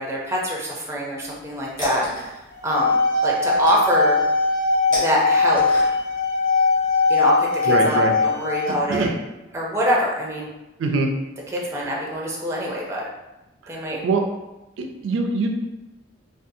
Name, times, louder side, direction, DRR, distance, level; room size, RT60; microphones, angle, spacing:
voice 1, 0.0-2.1 2.6-4.2 4.9-5.6 7.1-9.1 9.5-10.5 11.5-13.1 13.7-14.0, equal, 15° right, -3 dB, 0.4 m, -24 dB
sound 1, 1.2-6.3, equal, 25° left, 0.9 m, -34 dB
sound 2, 2.5-8.7, left 3 dB, 55° left, 0.7 m, -20 dB
voice 2, 7.7-8.1 8.7-9.2 10.8-11.1 13.8-14.2 14.8-15.5, right 3 dB, 80° right, 3 dB, 0.3 m, -23 dB
2.6 x 2.3 x 2.6 m, 1.0 s
head